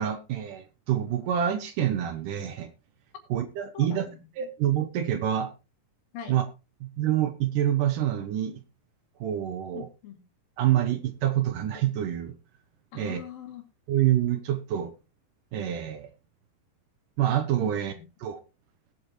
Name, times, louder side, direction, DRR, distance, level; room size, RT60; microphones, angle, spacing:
voice 1, 0.0-2.7 3.3-4.1 4.4-5.5 6.3-6.5 6.8-8.6 9.2-9.9 10.6-12.4 13.0-13.2 13.9-14.9 15.5-16.1 17.2-17.9 18.2-18.4, right 11 dB, 70° right, 9 dB, 2.2 m, -27 dB
voice 2, 3.7-4.5 6.1-6.4 9.7-10.2 12.9-13.6 17.6-18.0, left 9 dB, 70° left, 4 dB, 3.8 m, -42 dB
18.5 x 7.8 x 3.0 m, 0.30 s
omnidirectional pair, 4.3 m